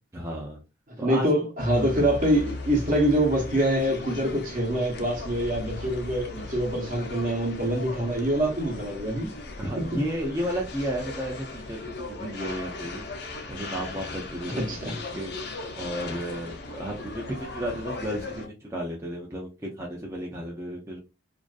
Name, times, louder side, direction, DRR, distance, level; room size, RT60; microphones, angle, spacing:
voice 1, 0.1-0.6 1.0-1.3 1.8-2.0 9.6-13.0 13.5-21.0, equal, 15° right, 0.4 m, -33 dB
voice 2, 1.0-9.3 9.8-9.9 14.6-14.9, right 1 dB, 45° right, 0.8 m, -25 dB
sound 1, 1.6-18.5, left 3 dB, 55° left, 0.5 m, -38 dB
2.5 x 2.4 x 2.2 m
head